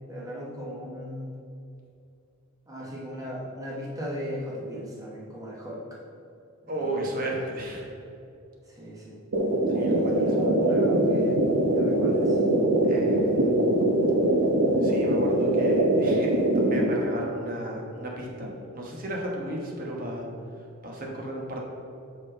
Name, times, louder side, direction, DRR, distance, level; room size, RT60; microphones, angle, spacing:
voice 1, 0.1-1.4 2.7-6.0 6.6-7.6 8.7-9.2 9.8-11.4 11.7-12.4, equal, 15° right, -4 dB, 1.2 m, -37 dB
voice 2, 6.7-7.9 9.7-10.3 12.9-13.5 14.8-20.3 20.8-21.6, right 1 dB, 40° right, -1 dB, 1.2 m, -34 dB
sound 1, 9.3-16.8, right 1 dB, 85° right, 1.0 m, -22 dB
5.8 x 5.3 x 5.0 m, 2.7 s
head